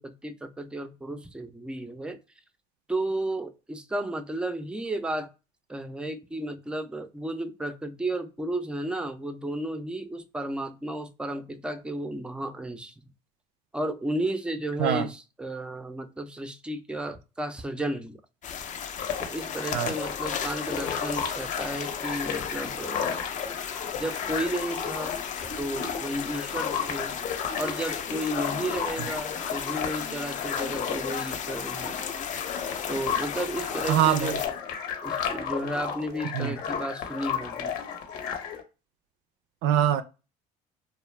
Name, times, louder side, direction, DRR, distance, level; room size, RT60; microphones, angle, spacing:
voice 1, 0.0-2.2 2.9-5.3 5.7-13.1 13.7-18.2 19.2-23.2 23.9-25.2 25.6-27.2 27.6-32.2 32.9-34.4 35.0-37.8, right 1 dB, 5° right, 0.5 m, -33 dB
sound 1, 18.4-34.5, left 7 dB, 45° left, 0.6 m, -35 dB
sound 2, 19.0-38.6, left 7 dB, 65° left, 0.9 m, -33 dB
voice 2, 33.9-34.4 36.3-36.6 39.6-40.0, right 10 dB, 70° right, 0.4 m, -23 dB
2.3 x 2.1 x 3.2 m
supercardioid pair, 80°, 18 cm